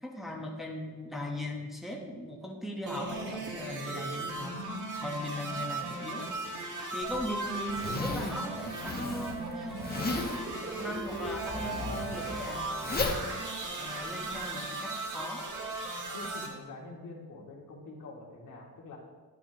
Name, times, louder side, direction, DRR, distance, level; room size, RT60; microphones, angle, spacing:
voice 1, 0.0-4.6 5.0-6.3 6.9-10.3 10.7-13.3 13.8-15.5, left 1 dB, ahead, 0 dB, 1.1 m, -39 dB
sound 1, 2.9-16.5, right 2 dB, 55° right, 1.8 m, -37 dB
Zipper (clothing), 7.0-14.4, left 3 dB, 25° left, 1.1 m, -37 dB
voice 2, 16.1-19.0, left 3 dB, 55° left, -3 dB, 2.2 m, -46 dB
11.0 x 7.7 x 3.0 m, 1.3 s
cardioid pair, 95°, 37 cm